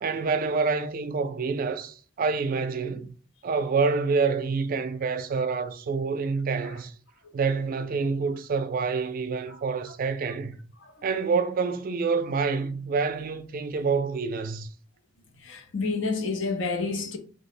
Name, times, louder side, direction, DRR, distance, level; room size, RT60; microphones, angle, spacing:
voice 1, 0.0-3.1 3.4-6.9 7.3-10.6 11.0-14.7, right 4 dB, 50° right, 0.3 m, -27 dB
voice 2, 15.4-17.2, left 4 dB, 75° left, 0.7 m, -29 dB
3.1 x 2.1 x 4.1 m
head